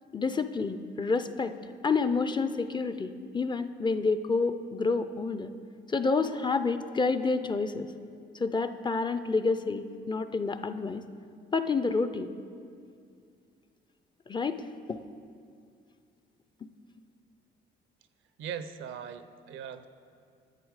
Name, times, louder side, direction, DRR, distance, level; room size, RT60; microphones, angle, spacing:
voice 1, 0.1-1.5 1.8-5.5 5.9-7.9 8.4-11.0 11.5-12.3 14.3-14.6, left 4 dB, 25° left, 10 dB, 0.4 m, -29 dB
voice 2, 18.4-19.9, right 7 dB, 80° right, 10 dB, 0.6 m, -39 dB
10.5 x 7.5 x 4.8 m, 2.3 s
cardioid pair, 90°, 20 cm